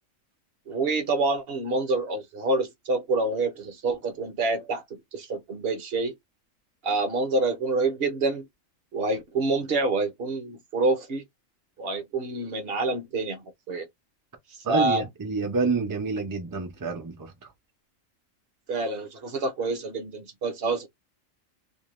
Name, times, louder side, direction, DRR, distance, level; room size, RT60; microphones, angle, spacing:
voice 1, 0.7-6.2 6.8-8.5 8.9-11.2 11.8-13.9 14.7-15.1 18.7-20.9, right 3 dB, 55° right, 0.8 m, -27 dB
voice 2, 14.6-17.3, right 4 dB, 35° right, 0.3 m, -28 dB
2.6 x 2.1 x 3.0 m
omnidirectional pair, 1.4 m